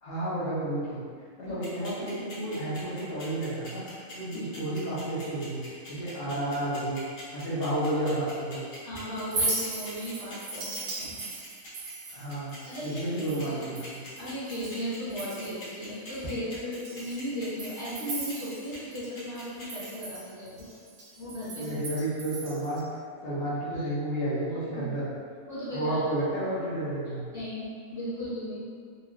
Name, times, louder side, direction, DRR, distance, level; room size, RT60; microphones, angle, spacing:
voice 1, 0.0-1.0 1.4-3.8 4.1-5.6 5.9-7.0 7.3-8.6 12.1-12.5 12.8-14.0 21.6-22.9 23.2-25.1 25.7-27.2, right 1 dB, 50° left, -9 dB, 1.0 m, -31 dB
sound 1, 1.6-19.9, left 1 dB, 85° left, 1.4 m, -45 dB
voice 2, 8.8-11.2 12.7-13.7 14.2-20.7 21.2-21.7 23.7-23.8 24.7-24.8 25.5-26.0 27.3-28.6, equal, 15° right, -14 dB, 0.8 m, -36 dB
Chink clink, 9.2-14.8 15.1-15.7 16.1-16.2 16.7-19.1 19.4-22.8, right 2 dB, 65° right, 0.9 m, -37 dB
3.0 x 2.5 x 2.4 m, 2.1 s
omnidirectional pair, 1.5 m